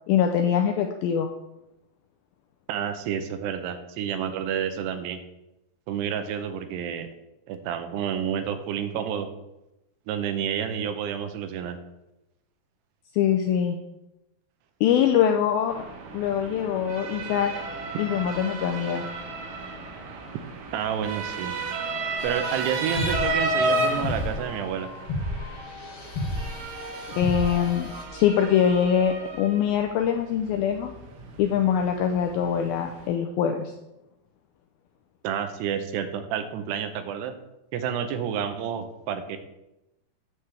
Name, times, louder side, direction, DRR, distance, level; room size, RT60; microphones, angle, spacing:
voice 1, 0.1-1.3 13.1-13.8 14.8-15.8 16.1-17.5 18.0-19.0 27.2-30.9 31.4-33.7, left 8 dB, 85° left, 4 dB, 2.1 m, -23 dB
voice 2, 2.7-5.2 5.9-7.1 7.5-9.3 10.1-11.8 20.7-21.5 22.2-24.9 35.2-37.3 37.7-39.4, right 8 dB, 85° right, 8 dB, 2.8 m, -29 dB
Motor vehicle (road) / Siren, 15.7-33.1, right 2 dB, 65° right, 2.5 m, -33 dB
sound 1, 22.2-28.0, left 1 dB, 60° left, 1.6 m, -33 dB
9.5 x 7.4 x 3.3 m, 0.92 s
omnidirectional pair, 4.8 m